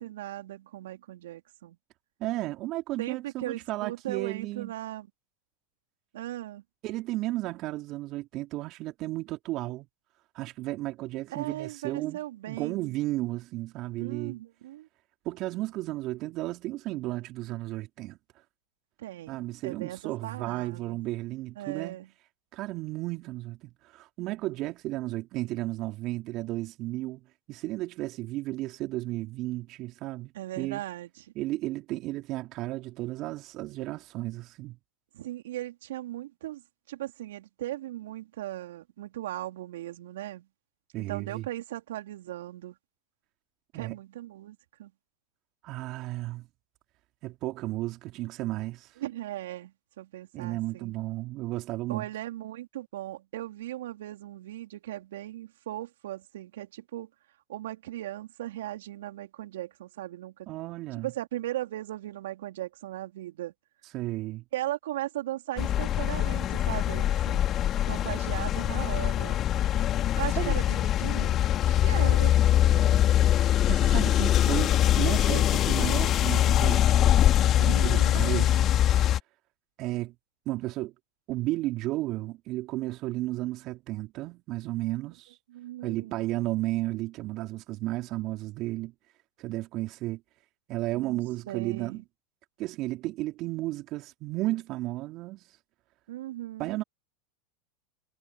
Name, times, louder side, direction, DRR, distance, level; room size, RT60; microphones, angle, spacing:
voice 1, 0.0-1.8 3.0-5.1 6.1-6.6 11.3-13.0 14.0-14.9 19.0-21.0 21.6-22.1 30.3-31.3 35.1-36.6 36.9-40.5 40.9-42.7 43.7-44.9 49.0-50.9 51.9-57.1 57.5-60.5 61.0-63.5 64.5-67.5 67.9-69.4 70.2-71.4 71.8-72.3 77.6-78.2 85.5-86.2 90.9-91.2 91.5-92.0 96.1-96.8, right 14 dB, 75° right, 4.0 m, -38 dB
voice 2, 2.2-4.7 6.8-9.9 10.3-12.2 12.5-14.4 15.3-18.2 19.3-22.1 22.5-23.6 23.8-27.2 27.5-30.8 31.4-34.8 40.9-41.5 43.7-44.0 45.6-46.5 47.2-48.9 50.3-52.1 60.5-61.1 63.9-64.4 70.4-70.6 72.7-73.1 73.7-77.2 77.6-78.6 79.8-80.1 80.5-80.9 81.3-85.4 85.8-88.9 89.4-90.2 90.7-92.0 92.6-95.4 96.6-96.8, right 18 dB, 50° right, 3.5 m, -33 dB
sound 1, 65.6-79.2, left 11 dB, 40° left, 2.8 m, -23 dB
hypercardioid pair, 90°, 0 cm